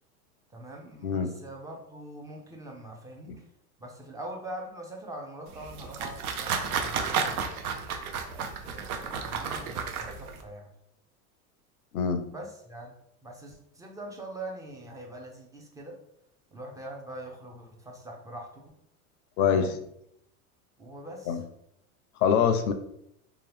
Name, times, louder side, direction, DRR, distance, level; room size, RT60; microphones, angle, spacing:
voice 1, 0.5-3.4 3.8-7.5 8.3-10.7 12.3-12.9 13.2-16.0 16.5-18.7 19.5-19.8 20.8-21.4, right 1 dB, 10° right, 0 dB, 0.3 m, -43 dB
voice 2, 1.0-1.3 3.3-3.4 11.9-12.2 19.4-19.7 21.3-21.4 22.2-22.7, left 7 dB, 80° left, 7 dB, 0.5 m, -24 dB
sound 1, 5.5-10.4, right 6 dB, 75° right, 0.6 m, -32 dB
2.8 x 2.3 x 3.2 m, 0.75 s
hypercardioid pair, 100°, 44 cm